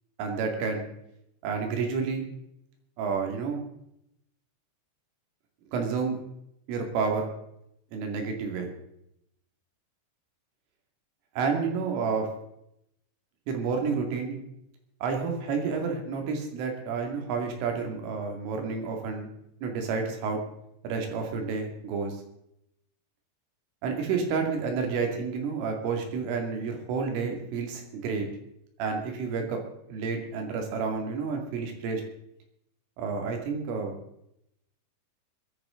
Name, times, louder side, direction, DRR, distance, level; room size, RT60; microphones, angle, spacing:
voice 1, 0.2-0.8 1.4-2.3 3.0-3.6 5.7-6.2 6.7-7.3 7.9-8.7 11.4-12.3 13.5-14.4 15.0-19.3 19.6-20.4 20.8-22.1 23.8-28.3 28.8-29.6 29.9-32.0 33.0-33.9, right 5 dB, 85° right, 3 dB, 5.0 m, -30 dB
22.0 x 11.5 x 3.8 m, 0.79 s
omnidirectional pair, 5.6 m